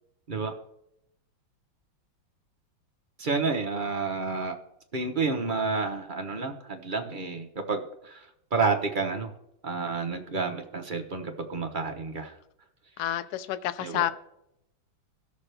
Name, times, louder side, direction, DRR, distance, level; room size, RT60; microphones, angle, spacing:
voice 1, 3.2-4.5 4.9-8.2 8.5-9.3 9.6-12.3 13.8-14.1, right 4 dB, 45° right, 3 dB, 0.6 m, -30 dB
voice 2, 13.0-14.1, left 13 dB, 70° left, 13 dB, 1.0 m, -29 dB
17.5 x 6.7 x 3.3 m, 0.80 s
omnidirectional pair, 2.1 m